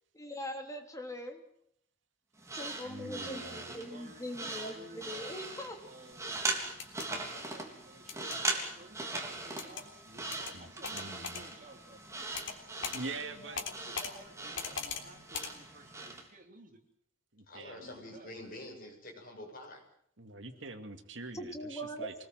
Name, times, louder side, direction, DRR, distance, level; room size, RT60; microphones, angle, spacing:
voice 1, 0.1-1.4 2.5-5.8 14.0-14.2 21.3-22.1, equal, 15° left, 3 dB, 3.3 m, -41 dB
sound 1, 2.4-16.3, right 2 dB, 15° right, 3.6 m, -40 dB
voice 2, 2.8-3.7 10.5-11.5 12.9-13.6 17.3-18.0 20.2-22.3, right 3 dB, 70° right, 7 dB, 2.4 m, -45 dB
voice 3, 3.4-5.4 5.8-6.4 7.1-12.1 12.8-16.8 17.7-18.4, right 1 dB, 45° right, 4 dB, 3.3 m, -55 dB
sound 2, 6.7-7.1 8.1-8.4 9.6-9.8 10.3-10.5 10.8-11.4 12.3-12.6 12.8-13.0 13.6-14.1 14.6-15.0 15.3-15.5, left 6 dB, 75° left, 3.5 m, -39 dB
voice 4, 17.5-19.8, left 1 dB, 50° left, 2 dB, 7.4 m, -47 dB
25.5 x 20.0 x 7.7 m, 0.70 s
head